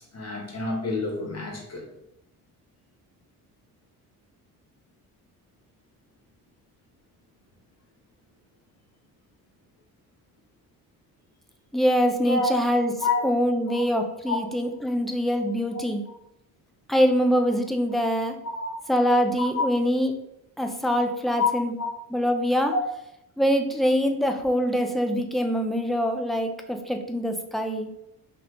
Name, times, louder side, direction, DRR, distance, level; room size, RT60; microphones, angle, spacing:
voice 1, 0.1-1.9 12.2-12.5 13.0-13.2 13.7-13.8 14.2-14.4 18.5-18.7 19.4-19.6 21.4-21.5 21.8-21.9 22.7-22.8, left 3 dB, 40° left, -1 dB, 1.2 m, -27 dB
voice 2, 11.7-12.9 13.2-16.0 16.9-18.4 18.9-20.1 20.6-21.7 22.1-22.7 23.4-27.9, equal, ahead, 5 dB, 0.4 m, -24 dB
2.8 x 2.6 x 3.4 m, 0.79 s
supercardioid pair, 70°, 39 cm